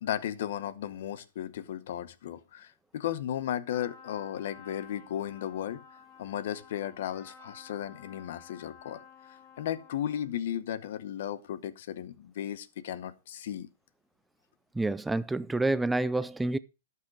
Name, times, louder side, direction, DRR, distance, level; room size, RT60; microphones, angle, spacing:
voice 1, 0.0-5.8 6.2-9.0 9.6-13.7, left 10 dB, 65° left, 0.9 m, -35 dB
Trumpet, 3.7-10.4, left 6 dB, 40° left, 3.8 m, -53 dB
voice 2, 14.7-16.6, right 2 dB, 5° right, 0.4 m, -28 dB
12.0 x 5.8 x 4.8 m
hypercardioid pair, 130°, 0 cm